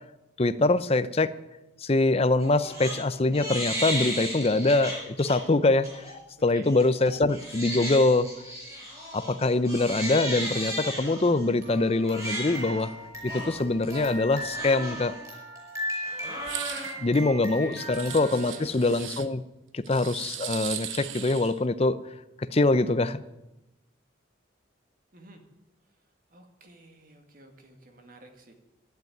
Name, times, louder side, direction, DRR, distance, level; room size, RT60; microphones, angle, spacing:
voice 1, 0.4-1.3 1.8-6.0 6.4-8.3 9.1-12.9 13.2-15.1 17.0-19.4 19.7-22.0 22.4-23.2, left 2 dB, 30° left, 13 dB, 0.5 m, -24 dB
Crying sobbing, 2.4-3.0 3.3-5.4 5.8-6.1 6.6-18.6, equal, 15° right, 5.4 m, -35 dB
sound 1, 16.4-16.9 17.9-19.3 19.9-21.6, right 11 dB, 80° right, 1.0 m, -37 dB
voice 2, 17.6-18.8 25.1-25.4 26.3-28.5, right 1 dB, 45° right, 5 dB, 2.0 m, -49 dB
12.0 x 10.5 x 9.2 m, 0.97 s
head